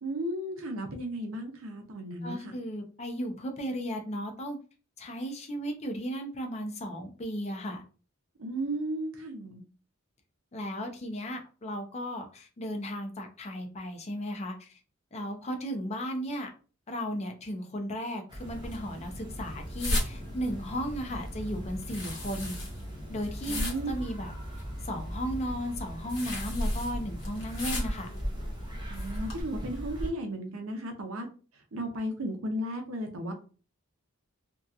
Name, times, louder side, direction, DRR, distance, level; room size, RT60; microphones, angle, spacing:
voice 1, 0.0-2.5 8.4-9.6 23.5-23.9 28.9-31.3 31.7-33.3, right 1 dB, 75° right, 5 dB, 0.6 m, -34 dB
voice 2, 2.2-4.6 5.0-7.8 10.5-14.8 15.1-16.5 16.9-22.6 23.1-24.3 24.8-28.1, equal, 30° left, 4 dB, 0.4 m, -35 dB
sound 1, 18.3-30.1, equal, 20° right, 0.5 m, -38 dB
sound 2, 18.5-29.4, left 1 dB, 60° left, 1.0 m, -38 dB
2.7 x 2.2 x 2.3 m, 0.37 s
head